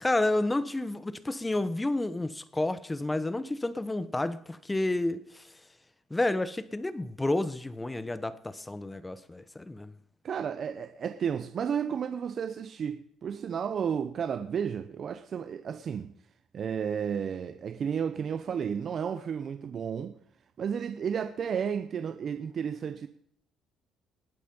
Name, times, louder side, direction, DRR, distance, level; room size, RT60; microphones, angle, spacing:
voice 1, 0.0-5.5 6.1-9.9, left 2 dB, 15° left, 1.1 m, -30 dB
voice 2, 10.2-16.1 16.5-20.2 20.6-23.1, right 7 dB, 50° right, 0.9 m, -32 dB
19.5 x 8.5 x 5.5 m
cardioid pair, 100°, 0 cm